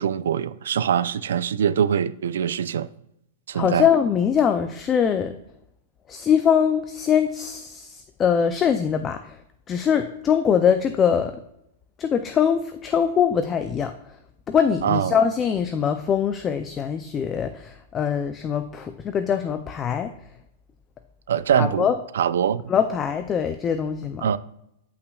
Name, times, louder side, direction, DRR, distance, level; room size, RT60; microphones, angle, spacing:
voice 1, 0.0-2.9 3.5-3.9 14.8-15.2 21.3-21.9 22.1-22.6 24.2-24.4, right 8 dB, 85° right, 0.4 m, -23 dB
voice 2, 3.5-5.3 6.1-9.2 9.7-11.4 12.0-13.9 14.5-20.1 21.6-21.9 22.7-24.3, left 7 dB, 15° left, 0.4 m, -22 dB
14.0 x 5.9 x 2.3 m
supercardioid pair, 165°, 0 cm